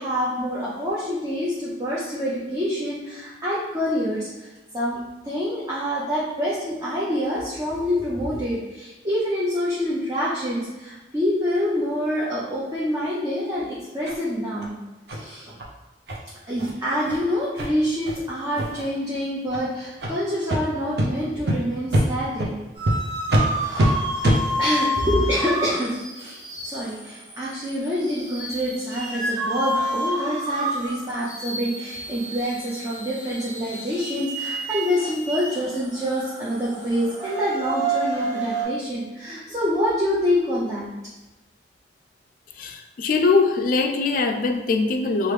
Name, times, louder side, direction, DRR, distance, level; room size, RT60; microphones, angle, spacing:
voice 1, 0.0-4.5 4.7-14.8 15.1-15.5 16.5-22.5 23.7-23.9 24.6-40.9, equal, 20° right, -8 dB, 0.6 m, -26 dB
sound 1, 14.0-14.2 14.6-14.7 15.1-15.2 15.6-15.7 16.1-16.2 16.6-16.7 17.0-17.2 17.6-17.7 18.1-18.2 18.5-18.9 19.5-19.6 20.0-20.1 20.5-20.6 21.0-21.1 21.5-21.6 21.9-22.0 22.4-22.5 22.8-22.9 23.3-23.4 23.8-23.9 24.2-24.4, right 1 dB, 70° right, 0.6 m, -22 dB
sound 2, 22.7-38.6, right 1 dB, 85° right, 1.5 m, -30 dB
voice 2, 42.6-45.3, left 4 dB, 50° left, 5 dB, 0.3 m, -22 dB
3.0 x 2.5 x 3.2 m, 1.1 s
head